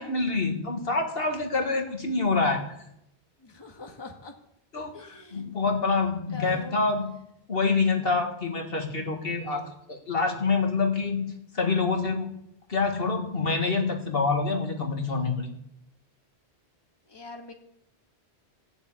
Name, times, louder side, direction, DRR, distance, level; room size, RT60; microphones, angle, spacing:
voice 1, 0.0-2.6 4.7-5.0 5.3-7.1 7.5-11.3 11.5-12.3 12.7-15.5, left 4 dB, 60° left, 3 dB, 2.0 m, -26 dB
voice 2, 3.4-4.3 4.9-5.5 6.3-6.8 17.0-17.5, left 3 dB, 25° left, 2 dB, 1.6 m, -43 dB
16.5 x 7.3 x 8.7 m, 0.78 s
omnidirectional pair, 1.1 m